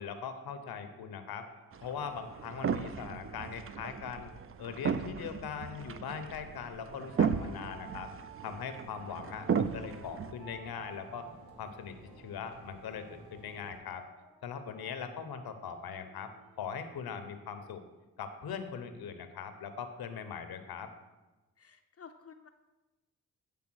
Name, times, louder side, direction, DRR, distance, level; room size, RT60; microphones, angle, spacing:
voice 1, 0.0-1.5 1.8-4.3 4.6-8.1 8.4-11.3 11.6-14.0 14.4-16.3 16.6-17.8 18.2-20.9, left 7 dB, 75° left, 8 dB, 0.8 m, -41 dB
sound 1, 0.6-18.0, right 3 dB, 70° right, 1.9 m, -57 dB
sound 2, 1.7-10.3, right 7 dB, 35° right, 0.4 m, -36 dB
sound 3, 8.7-13.8, right 2 dB, 90° right, 1.1 m, -55 dB
voice 2, 21.6-22.5, left 6 dB, 40° left, 6 dB, 0.5 m, -53 dB
8.6 x 3.5 x 6.2 m, 1.1 s
supercardioid pair, 50°, 37 cm